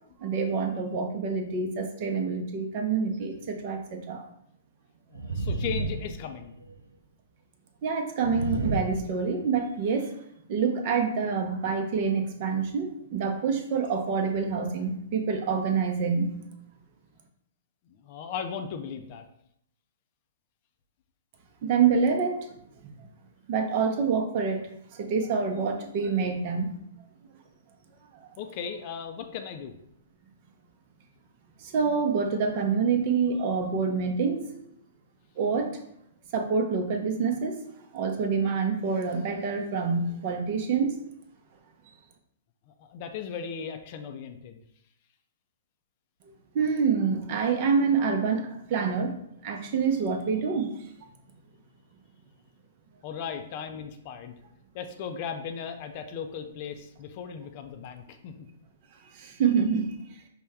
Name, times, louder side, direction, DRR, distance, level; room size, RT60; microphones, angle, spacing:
voice 1, 0.2-4.2 7.8-10.1 10.5-16.3 21.6-22.5 22.8-22.9 23.5-26.7 28.1-28.3 31.6-34.5 35.4-35.7 36.3-37.6 37.9-41.0 46.5-50.7 59.1-59.9, right 5 dB, 45° right, 5 dB, 0.6 m, -27 dB
sound 1, 3.3-3.4 5.1-6.7 8.2-9.6, right 3 dB, 85° right, 0.4 m, -32 dB
voice 2, 5.1-6.5 17.9-19.2 28.4-29.7 42.7-44.6 53.0-54.3 54.7-58.3, left 7 dB, 45° left, 7 dB, 0.4 m, -37 dB
5.2 x 2.2 x 3.4 m, 0.73 s
figure-of-eight pair, 115°, 0 cm